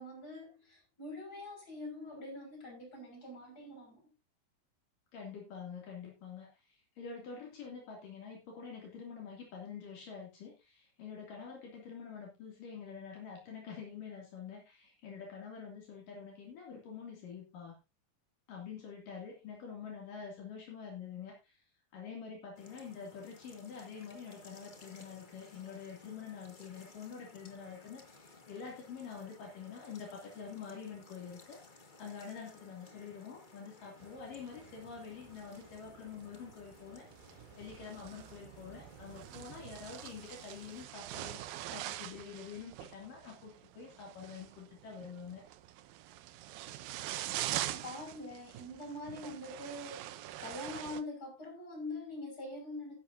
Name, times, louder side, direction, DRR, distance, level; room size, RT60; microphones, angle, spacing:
voice 1, 0.0-4.1 47.4-50.0 50.4-53.0, left 2 dB, 25° left, 1 dB, 6.4 m, -44 dB
voice 2, 5.1-17.8 18.5-21.6 21.9-45.4, left 6 dB, 65° left, -1 dB, 4.3 m, -47 dB
sound 1, 22.5-40.9, left 3 dB, 45° left, 0.6 m, -58 dB
sound 2, 34.0-51.0, right 14 dB, 80° right, 2.5 m, -45 dB
15.0 x 11.0 x 2.7 m, 0.26 s
omnidirectional pair, 4.1 m